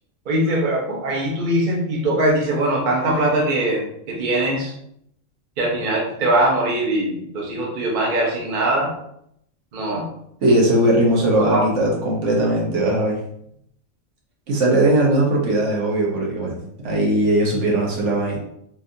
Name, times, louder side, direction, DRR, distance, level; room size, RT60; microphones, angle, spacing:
voice 1, 0.3-4.7 5.6-8.9 9.7-10.1 11.4-11.6, right 1 dB, 40° right, -2 dB, 0.8 m, -21 dB
voice 2, 10.4-13.2 14.5-16.6 16.8-18.4, right 1 dB, 60° right, -3 dB, 1.1 m, -19 dB
3.6 x 2.6 x 2.6 m, 0.72 s
omnidirectional pair, 1.5 m